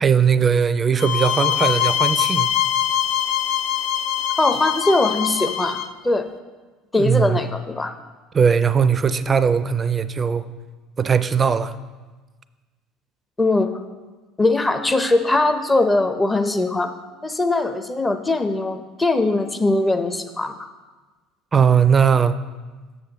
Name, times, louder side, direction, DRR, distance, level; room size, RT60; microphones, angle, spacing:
voice 1, 0.0-2.5 6.9-7.4 8.3-10.4 11.0-11.7 21.5-22.4, right 7 dB, 30° right, 14 dB, 0.4 m, -19 dB
sound 1, 1.0-5.9, left 11 dB, 65° left, 0.4 m, -23 dB
voice 2, 4.4-5.8 6.0-6.3 6.9-7.9 13.4-13.7 14.4-16.9 17.2-20.5, left 2 dB, 15° left, 7 dB, 0.6 m, -20 dB
7.0 x 6.7 x 4.0 m, 1.3 s
hypercardioid pair, 70°, 0 cm